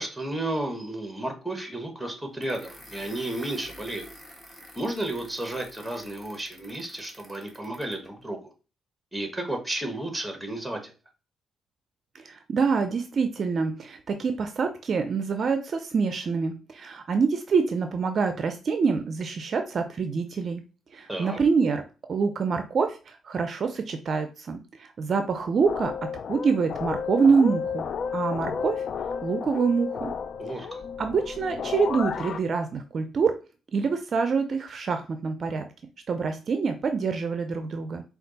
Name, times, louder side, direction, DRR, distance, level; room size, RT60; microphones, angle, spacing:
voice 1, 0.0-4.1 4.7-8.5 9.1-10.9 21.1-21.4 30.4-30.8, right 1 dB, 5° right, 4 dB, 1.3 m, -32 dB
sound 1, 2.4-8.1, equal, 10° left, 1.2 m, -48 dB
voice 2, 12.2-20.6 20.9-21.8 22.1-27.9 28.1-28.7 29.2-30.1 31.0-33.3 33.7-35.6 36.1-38.0, right 5 dB, 50° right, 7 dB, 0.5 m, -26 dB
sound 2, 25.6-32.4, left 6 dB, 55° left, 0.3 m, -32 dB
4.4 x 2.4 x 3.9 m, 0.33 s
cardioid pair, 90°, 0 cm